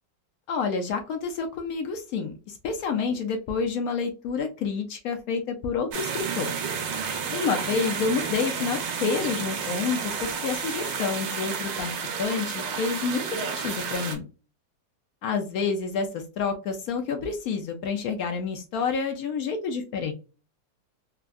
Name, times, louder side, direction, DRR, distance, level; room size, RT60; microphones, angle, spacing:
voice 1, 0.5-6.5 7.3-11.9 12.2-14.2 15.2-20.1, left 5 dB, 70° left, 5 dB, 0.9 m, -29 dB
sound 1, 5.9-14.2, right 6 dB, 80° right, 1.4 m, -31 dB
3.5 x 2.1 x 2.3 m, 0.33 s
omnidirectional pair, 1.9 m